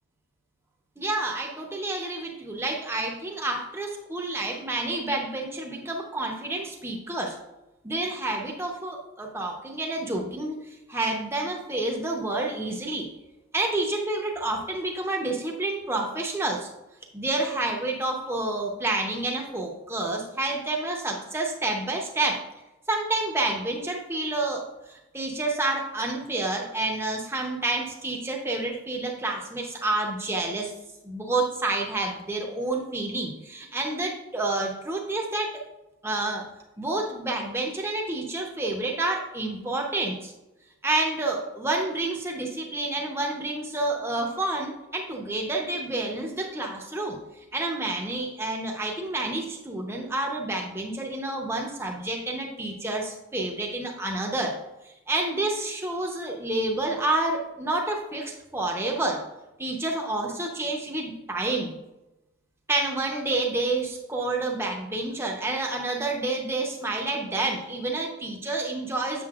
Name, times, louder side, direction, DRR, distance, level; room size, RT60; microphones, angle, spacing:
voice 1, 1.0-7.4 7.8-13.1 13.5-16.7 17.1-22.4 22.9-24.6 24.9-30.7 31.0-35.6 36.0-36.5 36.8-40.3 40.8-54.5 54.8-59.2 59.6-61.7 62.7-69.2, right 2 dB, 10° right, 0 dB, 0.8 m, -29 dB
7.6 x 6.9 x 2.4 m, 0.97 s
head